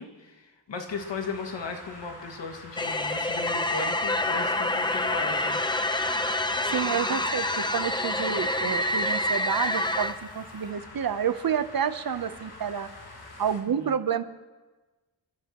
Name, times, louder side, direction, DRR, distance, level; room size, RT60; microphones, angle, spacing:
voice 1, 0.0-5.6 13.8-13.9, left 4 dB, 80° left, 3 dB, 2.1 m, -36 dB
sound 1, 0.9-13.6, left 2 dB, 60° left, 3.6 m, -46 dB
sound 2, 2.8-10.2, left 1 dB, 10° left, 0.7 m, -27 dB
voice 2, 6.6-12.9 13.4-14.2, right 8 dB, 55° right, 11 dB, 0.9 m, -29 dB
27.5 x 14.0 x 3.0 m, 1.2 s
wide cardioid pair, 110°, 43 cm